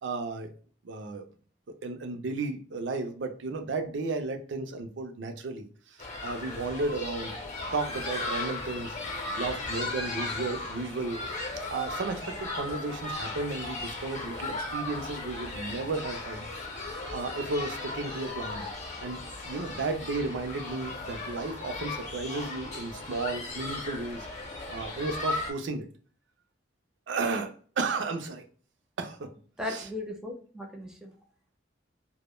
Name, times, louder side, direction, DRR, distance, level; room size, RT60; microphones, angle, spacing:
voice 1, 0.0-0.5 0.8-1.2 1.8-7.3 7.7-9.0 9.4-11.2 11.7-16.5 17.1-18.7 19.0-24.3 24.7-25.9 27.1-28.4 29.0-29.3 29.7-29.9, right 3 dB, 85° right, 6 dB, 0.4 m, -33 dB
sound 1, 6.0-25.5, left 2 dB, 40° left, 0.6 m, -36 dB
voice 2, 29.6-31.1, left 2 dB, 5° right, 1 dB, 0.4 m, -37 dB
2.1 x 2.0 x 3.0 m, 0.43 s
head